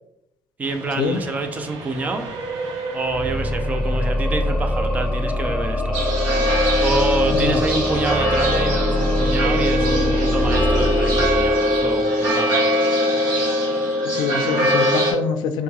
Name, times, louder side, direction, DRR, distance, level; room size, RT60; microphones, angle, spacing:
voice 1, 0.6-2.3 2.9-6.0 6.8-12.7, right 2 dB, 20° right, 6 dB, 0.4 m, -27 dB
Train, 0.6-5.9, right 4 dB, 60° right, 0.7 m, -34 dB
sound 1, 3.0-12.1, left 1 dB, 5° left, 1.3 m, -23 dB
sound 2, 5.9-15.1, equal, 90° right, 1.1 m, -21 dB
voice 2, 14.0-15.6, left 6 dB, 90° left, 8 dB, 0.4 m, -24 dB
4.5 x 2.8 x 2.3 m, 0.79 s
cardioid pair, 155°, 7 cm